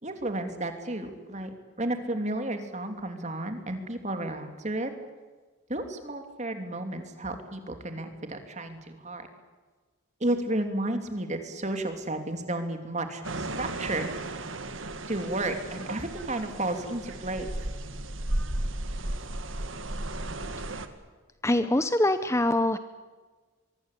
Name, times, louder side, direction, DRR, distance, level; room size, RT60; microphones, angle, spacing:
voice 1, 0.0-1.5 1.8-4.9 5.7-9.3 10.2-14.1 15.1-17.5, right 1 dB, 35° right, 6 dB, 3.1 m, -32 dB
sound 1, 13.2-20.9, right 1 dB, 65° right, 2.0 m, -34 dB
voice 2, 21.4-22.8, left 1 dB, 15° left, 11 dB, 0.8 m, -24 dB
24.5 x 23.0 x 8.5 m, 1.4 s
head